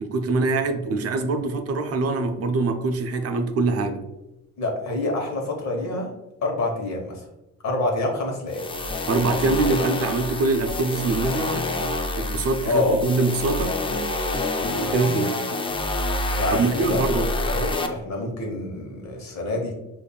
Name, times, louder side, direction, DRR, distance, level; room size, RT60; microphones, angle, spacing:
voice 1, 0.0-4.1 9.1-13.8 14.7-15.4 16.5-17.3, right 3 dB, 50° right, 0.5 m, -24 dB
voice 2, 4.6-6.1 6.4-7.2 7.6-8.7 12.6-13.0 14.6-15.0 16.3-19.7, left 2 dB, 65° left, 1.0 m, -27 dB
sound 1, 8.5-17.9, left 2 dB, 20° left, 0.3 m, -27 dB
5.1 x 2.6 x 2.2 m
cardioid pair, 90°, 30 cm